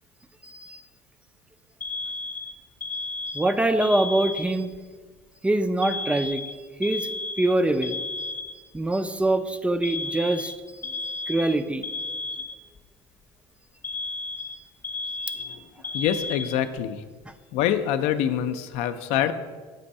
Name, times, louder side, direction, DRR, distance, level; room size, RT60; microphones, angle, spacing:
voice 1, 0.4-0.8 3.3-4.7 5.4-6.4 6.8-7.1 7.4-8.0 8.7-10.5 11.3-11.8, right 2 dB, 10° right, 9 dB, 0.3 m, -24 dB
Alarm, 1.8-4.8 5.8-8.8 9.8-12.8 13.8-16.8, left 3 dB, 20° left, 0.7 m, -33 dB
voice 2, 15.9-17.0 17.5-19.3, left 10 dB, 75° left, 10 dB, 0.4 m, -25 dB
7.5 x 2.6 x 5.3 m, 1.4 s
supercardioid pair, 100°, 11 cm